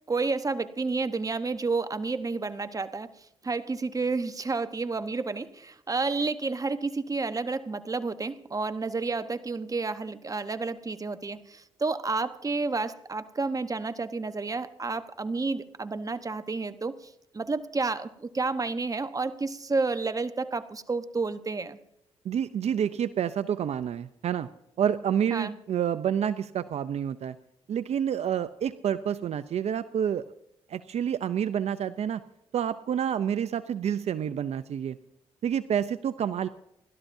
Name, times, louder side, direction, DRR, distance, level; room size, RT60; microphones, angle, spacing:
voice 1, 0.1-3.1 3.4-17.0 17.3-21.8 25.3-25.6, right 3 dB, 30° right, 11 dB, 1.1 m, -30 dB
voice 2, 22.2-24.5 24.8-27.4 27.7-30.2 30.7-32.2 32.5-35.0 35.4-36.5, right 9 dB, 65° right, 13 dB, 0.6 m, -28 dB
29.0 x 12.5 x 2.7 m, 0.82 s
supercardioid pair, 60°, 12 cm